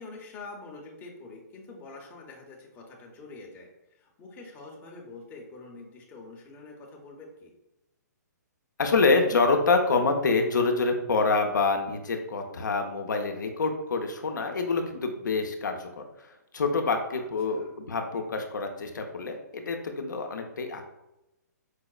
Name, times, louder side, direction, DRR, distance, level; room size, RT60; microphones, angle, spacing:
voice 1, 0.0-7.5 17.2-17.7, left 3 dB, 20° left, 0 dB, 0.6 m, -46 dB
voice 2, 8.8-20.9, left 4 dB, 80° left, 4 dB, 0.5 m, -26 dB
4.6 x 2.0 x 2.3 m, 0.92 s
hypercardioid pair, 135°, 10 cm